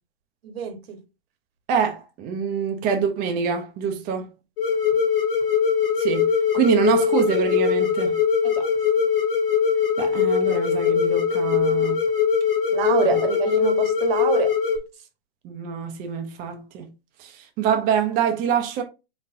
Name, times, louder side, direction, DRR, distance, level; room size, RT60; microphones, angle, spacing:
voice 1, 0.4-1.0 8.4-8.7 12.7-14.5 15.0-15.1, right 8 dB, 65° right, 1.3 m, -26 dB
voice 2, 1.7-4.3 6.0-8.2 10.0-12.0 15.4-16.9 17.2-18.8, right 7 dB, 25° right, 0.7 m, -25 dB
sound 1, 4.6-14.8, left 7 dB, 55° left, 1.4 m, -21 dB
4.0 x 3.3 x 2.6 m
hypercardioid pair, 130°, 32 cm